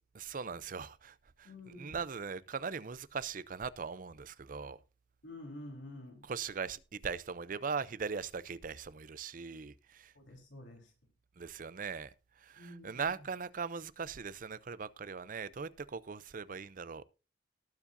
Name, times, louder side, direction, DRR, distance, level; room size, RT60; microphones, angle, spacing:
voice 1, 0.1-4.8 6.3-10.1 11.4-12.1 12.4-17.0, right 5 dB, 45° right, 0.5 m, -40 dB
voice 2, 1.4-2.0 5.2-6.3 10.1-10.9 12.6-13.3, left 1 dB, 70° left, 3.9 m, -49 dB
19.0 x 7.3 x 2.6 m
head